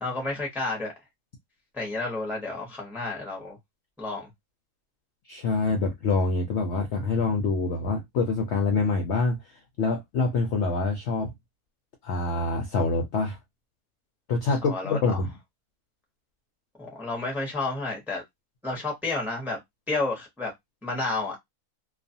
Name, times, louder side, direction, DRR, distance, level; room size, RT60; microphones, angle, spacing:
voice 1, 0.0-0.9 1.7-3.6 4.0-4.3 14.6-15.2 16.8-18.2 18.6-19.6 19.9-20.5 20.8-21.4, left 3 dB, ahead, 0.6 m, -31 dB
voice 2, 5.3-9.4 9.8-11.3 12.0-13.4 14.3-15.3, left 3 dB, 65° left, 0.7 m, -25 dB
2.4 x 2.4 x 2.6 m
omnidirectional pair, 1.6 m